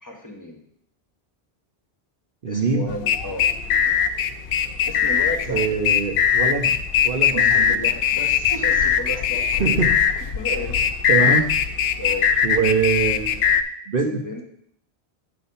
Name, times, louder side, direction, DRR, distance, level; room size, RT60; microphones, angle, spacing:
voice 1, 0.0-0.6 2.5-4.0 4.9-5.8 7.3-9.6 10.3-10.8 11.2-11.5 12.0-12.3 14.1-14.5, left 1 dB, 20° left, -1 dB, 1.4 m, -33 dB
voice 2, 2.4-2.9 5.5-6.7 7.0-7.8 9.6-10.0 11.1-11.5 12.4-13.5 13.9-14.2, right 5 dB, 60° right, 2 dB, 1.0 m, -23 dB
sound 1, 2.9-13.6, left 8 dB, 65° left, 0.7 m, -20 dB
8.6 x 4.1 x 5.5 m, 0.67 s
omnidirectional pair, 1.1 m